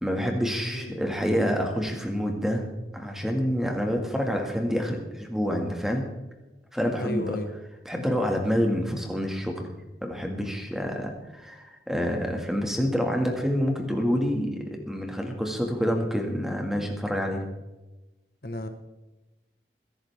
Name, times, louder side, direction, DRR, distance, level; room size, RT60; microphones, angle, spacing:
voice 1, 0.0-2.7 2.9-6.0 6.7-7.4 7.9-9.7 10.0-17.5, equal, ahead, 2 dB, 1.8 m, -27 dB
voice 2, 7.0-7.5 18.4-18.7, left 1 dB, 55° left, 7 dB, 1.2 m, -33 dB
21.5 x 11.0 x 3.5 m, 1.1 s
head